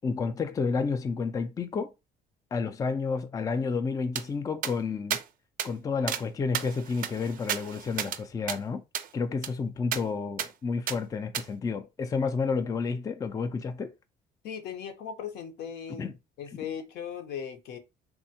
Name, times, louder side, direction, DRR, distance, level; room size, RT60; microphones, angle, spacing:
voice 1, 0.0-1.9 2.5-5.2 5.6-8.8 9.1-13.9 16.0-16.1, left 4 dB, 20° left, 0.3 m, -30 dB
sound 1, 4.2-4.3 4.6-4.7 5.1-5.2 5.6-5.7 6.1-6.2 6.5-8.2 8.5-8.6 8.9-9.1 9.4-9.5 9.9-10.0 10.4-10.5 10.9-11.0 11.3-11.5, right 10 dB, 55° right, 0.4 m, -33 dB
voice 2, 14.4-16.1 16.4-17.8, left 8 dB, 75° left, 0.8 m, -38 dB
3.5 x 2.2 x 2.7 m
cardioid pair, 110°, 17 cm